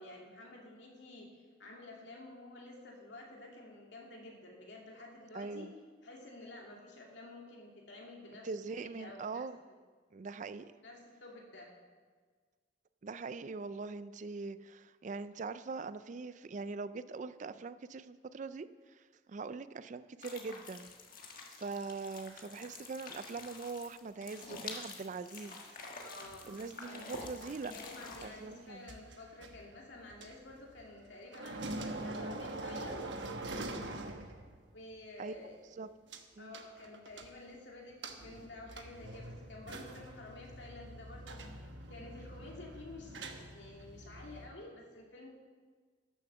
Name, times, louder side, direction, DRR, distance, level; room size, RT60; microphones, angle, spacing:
voice 1, 0.0-5.7 6.0-9.8 10.6-11.7 26.0-26.6 26.9-27.2 27.7-33.1 34.7-35.5 36.4-43.2 43.5-45.3, left 2 dB, 75° left, -1 dB, 2.4 m, -51 dB
voice 2, 5.3-5.7 8.4-9.6 10.1-10.7 13.0-20.9 21.6-25.6 26.5-27.7 28.2-28.9 35.2-35.3 35.8-35.9 36.4-36.6, right 4 dB, 45° right, 14 dB, 0.4 m, -42 dB
sound 1, 20.2-28.3, left 4 dB, 50° left, 1.5 m, -48 dB
sound 2, 26.2-31.1 31.3-34.7 35.0-35.1 36.1-36.2 36.5-37.6 38.0-44.5, right 2 dB, 75° right, 1.1 m, -45 dB
11.5 x 7.3 x 6.8 m, 1.5 s
head